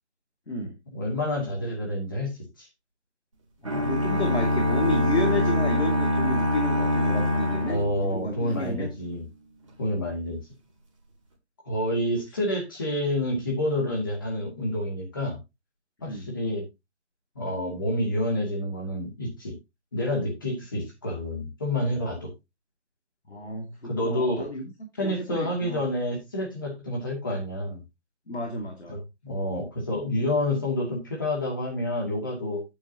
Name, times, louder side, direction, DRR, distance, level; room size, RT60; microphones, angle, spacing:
voice 1, 0.9-2.3 2.6-2.7 7.7-9.3 9.8-10.4 11.6-15.4 16.0-16.6 17.3-19.5 19.9-22.3 23.8-24.5 25.0-27.8 28.9-32.6, left 1 dB, 20° left, 2.5 m, -28 dB
voice 2, 3.6-7.8 8.1-8.9 16.0-16.3 23.3-24.7 25.0-25.8 28.3-29.0, left 1 dB, 65° left, 2.6 m, -31 dB
sound 1, 3.7-8.6, left 1 dB, 30° right, 2.1 m, -24 dB
9.4 x 9.0 x 2.9 m
figure-of-eight pair, 175°, 35 cm